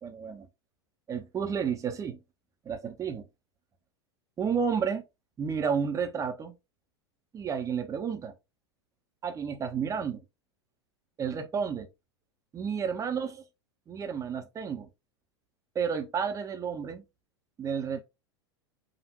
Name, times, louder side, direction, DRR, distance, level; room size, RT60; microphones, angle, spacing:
voice 1, 0.0-0.5 1.1-2.2 2.6-3.2 4.4-5.0 5.4-6.5 7.3-8.3 9.2-10.2 11.2-11.9 12.5-13.4 13.9-14.9 15.7-17.0 17.6-18.0, right 6 dB, 20° right, 0.8 m, -31 dB
5.1 x 2.5 x 2.9 m
figure-of-eight pair, 90°, 14 cm